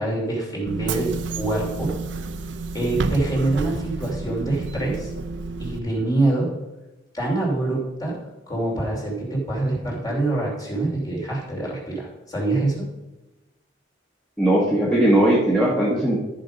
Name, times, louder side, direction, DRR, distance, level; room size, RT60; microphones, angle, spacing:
voice 1, 0.0-2.0 2.7-5.1 5.6-6.5 7.1-8.2 8.5-12.9, right 2 dB, 20° left, -3 dB, 3.0 m, -25 dB
Bus / Engine, 0.7-5.8, right 3 dB, 75° right, 0.6 m, -30 dB
voice 2, 14.4-16.2, right 1 dB, 5° left, -5 dB, 1.4 m, -18 dB
13.5 x 5.2 x 5.2 m, 1.0 s
head